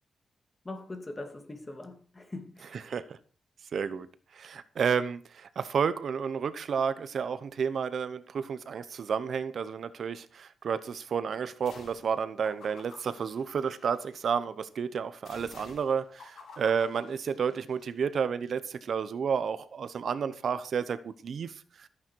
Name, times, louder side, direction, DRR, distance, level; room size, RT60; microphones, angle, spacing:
voice 1, 0.6-2.9, left 2 dB, 20° left, 2.3 m, -42 dB
voice 2, 2.9-3.2 3.7-4.1 4.3-21.9, right 6 dB, 55° right, 0.8 m, -31 dB
sound 1, 11.7-12.1 12.4-14.2 15.3-17.9, left 4 dB, 85° left, 5.8 m, -51 dB
14.5 x 10.0 x 4.6 m
wide cardioid pair, 145°, 0 cm